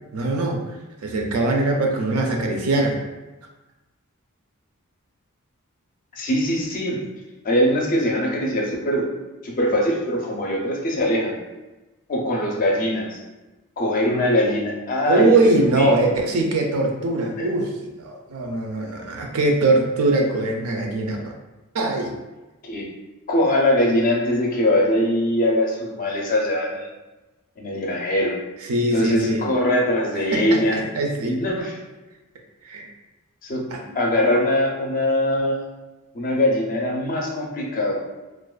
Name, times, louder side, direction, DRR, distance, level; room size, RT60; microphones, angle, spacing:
voice 1, 0.1-0.8 1.0-3.0 15.1-21.2 21.7-22.2 28.6-29.5 30.3-31.4 32.6-32.9 33.7-34.0, right 2 dB, 90° right, 2 dB, 0.4 m, -22 dB
voice 2, 6.1-7.0 7.4-9.1 9.4-11.3 12.1-13.2 13.8-16.0 17.4-17.5 22.6-22.9 23.3-26.9 27.6-28.4 28.9-30.8 31.3-31.8 33.4-33.7 33.9-35.6 36.1-38.0, left 1 dB, 40° left, -1 dB, 0.4 m, -22 dB
2.4 x 2.2 x 2.3 m, 1.1 s
head